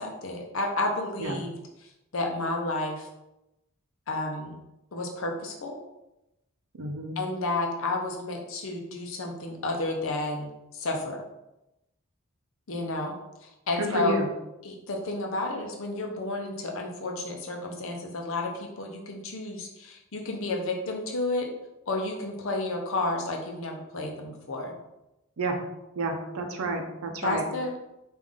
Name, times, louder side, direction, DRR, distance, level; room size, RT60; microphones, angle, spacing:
voice 1, 0.0-1.5 2.1-3.1 4.1-4.5 4.9-5.8 7.2-11.2 12.7-13.1 13.4-14.2 14.6-21.5 21.9-24.8 27.2-27.8, left 2 dB, 60° left, 1 dB, 0.6 m, -31 dB
voice 2, 6.8-7.2 13.8-14.3 25.4-25.6 26.0-27.4, right 2 dB, 75° right, 4 dB, 0.6 m, -30 dB
3.5 x 2.5 x 3.5 m, 0.92 s
head